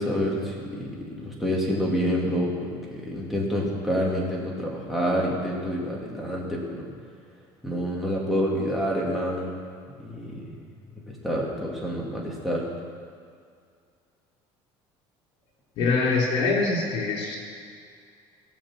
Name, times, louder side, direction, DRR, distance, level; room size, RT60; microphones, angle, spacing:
voice 1, 0.0-6.8 7.6-9.5 10.0-10.5 11.1-12.7, equal, ahead, -4 dB, 2.5 m, -28 dB
voice 2, 15.8-17.4, left 3 dB, 60° left, -2 dB, 4.3 m, -24 dB
17.0 x 7.3 x 7.5 m, 2.2 s
cardioid pair, 155°, 11 cm